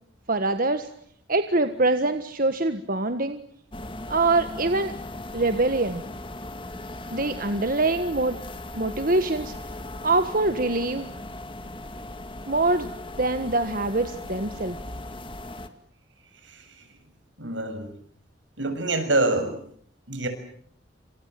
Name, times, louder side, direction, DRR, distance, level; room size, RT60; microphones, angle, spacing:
voice 1, 0.3-0.9 1.3-3.4 4.1-4.9 5.3-6.0 7.1-8.4 8.7-9.5 10.0-11.1 12.5-12.9 13.2-14.8, right 2 dB, 50° right, 9 dB, 1.5 m, -24 dB
sound 1, 3.7-15.7, left 2 dB, 25° left, 2.2 m, -38 dB
voice 2, 17.4-17.9 18.6-19.6 20.1-20.3, right 2 dB, 80° right, 8 dB, 7.0 m, -25 dB
28.5 x 26.5 x 7.7 m, 0.63 s
head